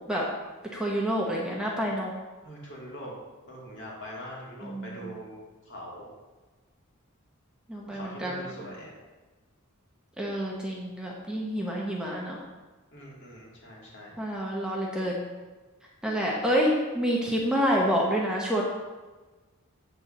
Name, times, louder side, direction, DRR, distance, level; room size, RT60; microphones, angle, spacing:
voice 1, 0.7-2.1 4.6-5.2 7.7-8.6 10.2-12.4 14.2-15.3 16.0-18.6, equal, 5° right, -3 dB, 1.1 m, -28 dB
voice 2, 2.4-3.1 3.5-5.4 5.7-6.1 7.9-9.0 12.9-14.1, equal, 55° left, -4 dB, 2.7 m, -42 dB
8.2 x 4.6 x 6.6 m, 1.3 s
head